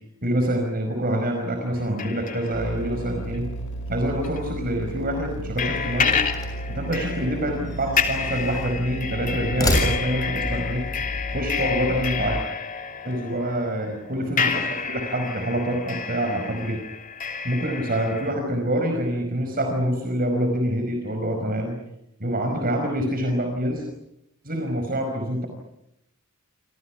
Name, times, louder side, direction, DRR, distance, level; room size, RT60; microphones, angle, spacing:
voice 1, 0.2-3.5 3.9-6.1 6.7-10.8 11.3-12.4 13.0-16.8 17.4-21.8 22.2-23.9 24.4-25.5, equal, 45° right, 4 dB, 5.1 m, -26 dB
sound 1, 1.8-3.9 4.2-4.4 5.6-18.3, left 6 dB, 40° left, 3.1 m, -30 dB
sound 2, 2.5-12.3, right 1 dB, 60° left, 6.9 m, -34 dB
sound 3, 6.0-6.7 7.6-8.7 9.4-10.4, left 1 dB, 15° left, 7.3 m, -28 dB
28.5 x 27.0 x 6.0 m, 0.81 s
head